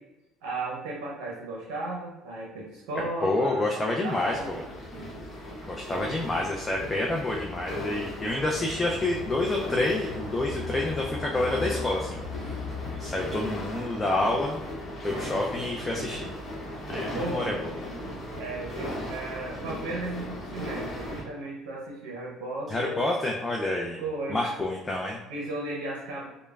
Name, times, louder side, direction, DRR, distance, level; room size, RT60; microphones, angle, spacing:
voice 1, 0.4-4.7 17.1-17.7 18.4-23.0 24.0-24.4 25.3-26.3, right 2 dB, 90° right, -3 dB, 0.6 m, -35 dB
voice 2, 3.2-4.6 5.7-14.6 15.0-16.3 16.9-17.9 22.7-24.0 24.3-25.2, left 2 dB, 20° left, -2 dB, 0.3 m, -28 dB
sound 1, 4.0-21.2, equal, 40° left, 0.9 m, -38 dB
sound 2, 6.2-13.3, left 3 dB, 70° left, 0.8 m, -39 dB
3.1 x 2.1 x 2.3 m, 1.0 s
cardioid pair, 100°, 0 cm